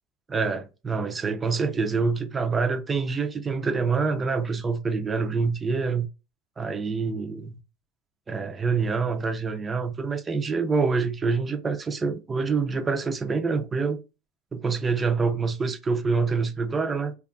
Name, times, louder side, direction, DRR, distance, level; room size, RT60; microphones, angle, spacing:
voice 1, 0.3-6.1 6.6-7.6 8.3-14.0 14.5-17.1, right 4 dB, 20° right, 0.4 m, -26 dB
2.6 x 2.2 x 2.5 m
supercardioid pair, 120°, 0 cm